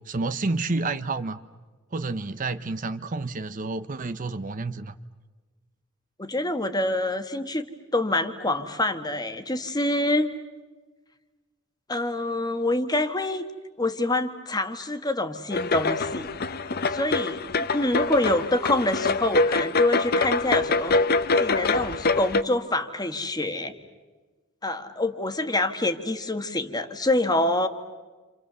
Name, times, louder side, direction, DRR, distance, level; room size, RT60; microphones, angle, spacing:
voice 1, 0.1-1.4 1.9-5.0, right 3 dB, 40° right, 11 dB, 0.8 m, -29 dB
voice 2, 6.2-7.6 7.9-10.3 11.9-13.4 13.8-16.3 16.9-20.9 21.4-23.7 24.6-27.7, left 2 dB, 20° left, 7 dB, 1.5 m, -26 dB
sound 1, 15.5-22.4, left 3 dB, 50° left, 0.8 m, -24 dB
29.0 x 28.0 x 6.9 m, 1.3 s
head